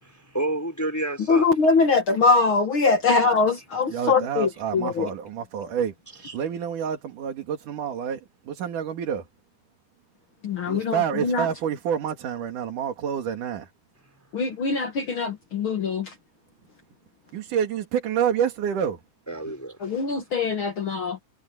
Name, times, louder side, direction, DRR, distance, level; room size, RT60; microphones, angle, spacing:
voice 1, 0.0-1.5 6.2-6.4 19.3-19.8, right 1 dB, 5° left, 3.7 m, -30 dB
voice 2, 1.3-5.1 10.4-11.5 14.3-16.1 19.8-21.2, left 4 dB, 50° left, 1.8 m, -22 dB
voice 3, 3.9-9.3 10.7-13.7 17.3-19.0, right 8 dB, 65° right, 3.6 m, -28 dB
omnidirectional pair, 3.9 m